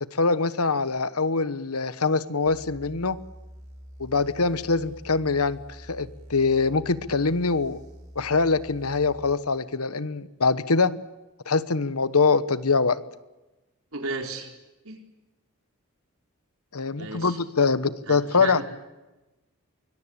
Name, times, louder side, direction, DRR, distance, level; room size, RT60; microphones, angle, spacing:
voice 1, 0.0-3.2 4.0-7.8 8.1-10.9 11.5-13.0 16.7-18.6, left 4 dB, 85° left, 15 dB, 1.2 m, -24 dB
sound 1, 2.4-9.3, equal, 35° right, 5.6 m, -46 dB
voice 2, 13.9-14.5 14.8-15.0 17.0-17.4 18.1-18.6, right 3 dB, 70° right, 3 dB, 4.1 m, -34 dB
24.0 x 22.0 x 8.8 m, 1.1 s
head